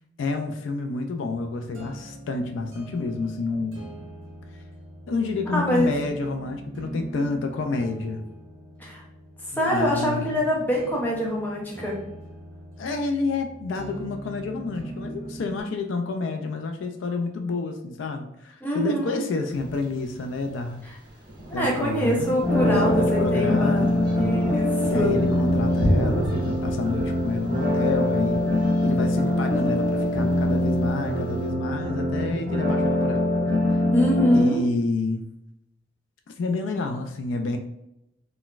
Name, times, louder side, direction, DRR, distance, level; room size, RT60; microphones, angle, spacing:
voice 1, 0.2-3.8 5.1-8.2 9.5-10.4 12.8-20.8 21.5-24.4 24.8-28.5 28.8-33.3 33.7-33.8 34.3-35.3 36.4-37.6, left 3 dB, 70° left, 5 dB, 0.3 m, -29 dB
sound 1, 1.2-15.6, right 1 dB, 70° right, 0.7 m, -41 dB
voice 2, 5.5-5.9 8.8-9.0 9.6-12.0 18.6-19.2 21.5-25.1 33.9-34.6, equal, 10° left, -4 dB, 0.6 m, -24 dB
Thunder, 19.5-31.5, equal, 25° right, 0.8 m, -33 dB
sound 2, 22.4-34.4, left 1 dB, 50° right, 1.5 m, -23 dB
3.8 x 2.2 x 2.4 m, 0.85 s
head